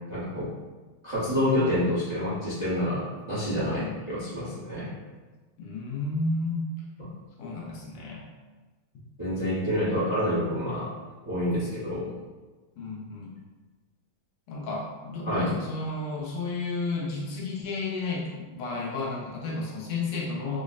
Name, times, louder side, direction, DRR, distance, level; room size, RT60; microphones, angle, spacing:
voice 1, 0.1-0.5 1.0-4.9 7.0-7.1 9.2-10.9 11.2-12.1 15.2-15.5, left 1 dB, 30° right, -12 dB, 0.5 m, -28 dB
voice 2, 3.7-4.0 5.6-6.7 7.4-8.3 12.8-13.3 14.5-20.6, left 3 dB, 90° left, -3 dB, 1.7 m, -32 dB
5.4 x 2.1 x 2.4 m, 1.3 s
omnidirectional pair, 2.4 m